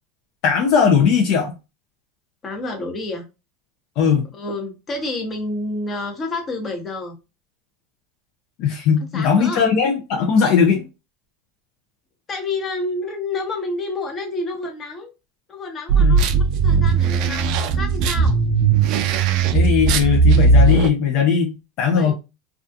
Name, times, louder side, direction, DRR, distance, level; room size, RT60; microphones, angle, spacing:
voice 1, 0.4-1.5 4.0-4.2 8.6-10.8 15.9-16.2 19.5-22.1, left 6 dB, 55° left, 0.5 m, -18 dB
voice 2, 2.4-3.2 4.3-7.2 9.1-9.6 12.3-15.1 15.5-18.4 21.9-22.1, left 2 dB, 30° left, 0.8 m, -29 dB
sound 1, 15.9-20.9, right 4 dB, 55° right, 0.3 m, -17 dB
2.3 x 2.3 x 2.5 m
supercardioid pair, 115°, 0 cm